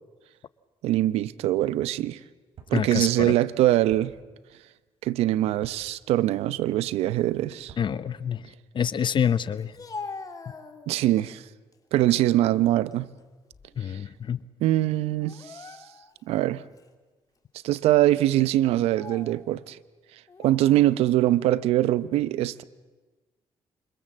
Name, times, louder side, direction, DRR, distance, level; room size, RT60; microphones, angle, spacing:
voice 1, 0.8-2.2 2.7-4.1 5.0-7.7 10.9-11.4 11.9-13.1 14.6-15.6 16.3-16.6 17.6-19.8 20.4-22.6, right 14 dB, 90° right, 0.8 m, -23 dB
sound 1, 2.5-2.8 3.9-4.1 5.6-5.8 7.6-7.9, right 7 dB, 65° right, 6.5 m, -47 dB
voice 2, 2.7-3.3 7.8-8.5 8.7-9.7 13.8-14.4, left 8 dB, 50° left, 0.9 m, -27 dB
Speech, 9.6-11.2 11.7-12.3 12.7-14.0 14.2-14.4 15.2-16.2 16.8-16.9 17.7-17.9 18.7-19.4 20.3-21.0, left 4 dB, 35° left, 3.0 m, -43 dB
28.5 x 25.5 x 7.5 m
cardioid pair, 75°, 10 cm